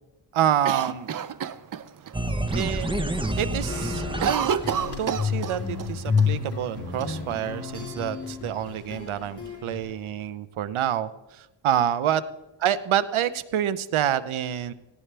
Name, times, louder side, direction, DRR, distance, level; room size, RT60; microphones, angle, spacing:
voice 1, 0.3-1.1 2.5-3.0 3.4-4.5 5.0-12.2 12.6-14.7, right 10 dB, 80° right, 15 dB, 0.8 m, -27 dB
Cough, 0.6-2.1 2.5-2.6 2.9-3.3 3.6-5.9 6.2-6.3 7.0-7.8, right 7 dB, 45° right, 0.6 m, -29 dB
sound 1, 2.1-5.4, right 1 dB, 10° right, 1.0 m, -29 dB
sound 2, 3.7-9.9, left 5 dB, 30° left, 5.1 m, -30 dB
18.5 x 16.5 x 3.4 m, 1.0 s
cardioid pair, 110°, 48 cm